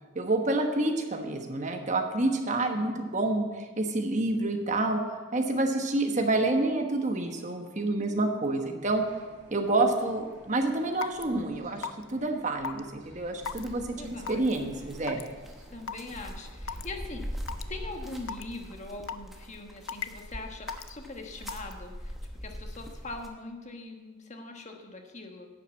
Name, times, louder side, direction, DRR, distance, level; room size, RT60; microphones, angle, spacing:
voice 1, 0.1-5.0 5.3-9.0 9.5-15.2, right 2 dB, 35° right, 4 dB, 1.2 m, -28 dB
voice 2, 2.6-3.0 13.8-15.0 15.7-17.4 17.7-22.2 22.4-25.5, left 2 dB, 35° left, 3 dB, 1.2 m, -42 dB
sound 1, 8.8-18.2, equal, 70° right, 4.0 m, -48 dB
Raindrop / Water tap faucet / Drip, 11.0-11.2 11.8-12.1 12.6-12.8 13.5-13.6 14.3-14.5 15.1-15.3 15.9-16.0 16.7-16.9 17.5-17.6 18.3-18.4 19.1-19.4 19.9-20.2 20.7-20.9 21.5-21.7, left 6 dB, 85° left, 0.5 m, -35 dB
sound 2, 13.4-23.3, equal, ahead, 1.0 m, -43 dB
10.5 x 7.4 x 7.1 m, 1.3 s
head